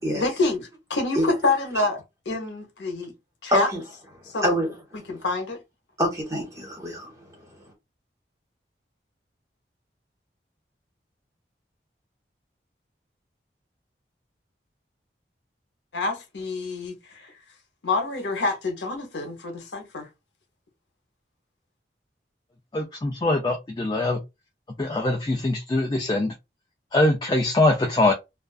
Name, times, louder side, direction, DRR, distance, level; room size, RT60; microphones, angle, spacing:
voice 1, 0.1-2.0 2.3-3.1 3.4-3.7 4.3-4.5 5.1-5.6 15.9-17.3 17.8-20.1, left 3 dB, 90° left, 0.8 m, -27 dB
voice 2, 3.5-3.8 4.4-4.7 6.0-7.4, equal, 20° right, 1.1 m, -25 dB
voice 3, 22.7-24.2 24.8-26.3 26.9-28.1, left 2 dB, 25° left, 0.4 m, -22 dB
2.4 x 2.4 x 2.3 m
head